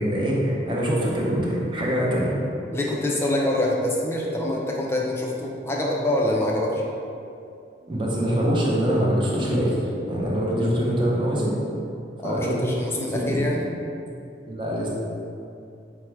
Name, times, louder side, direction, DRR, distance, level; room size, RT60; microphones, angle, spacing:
voice 1, 0.0-2.4 7.9-11.6 12.2-12.6 13.1-13.4 14.5-14.9, equal, 30° right, -4 dB, 0.7 m, -24 dB
voice 2, 2.7-6.8 12.2-13.7, left 1 dB, 15° left, -2 dB, 0.4 m, -25 dB
4.5 x 2.1 x 4.5 m, 2.5 s
head